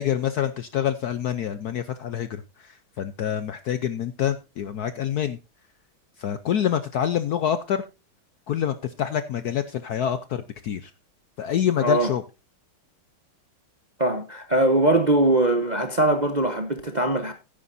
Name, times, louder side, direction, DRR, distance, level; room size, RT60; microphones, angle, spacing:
voice 1, 0.0-5.4 6.2-7.8 8.5-10.9 11.4-12.2, left 9 dB, 65° left, 1.0 m, -26 dB
voice 2, 11.8-12.1 14.0-17.3, right 1 dB, 30° right, 0.8 m, -21 dB
15.0 x 10.0 x 2.6 m
omnidirectional pair, 2.2 m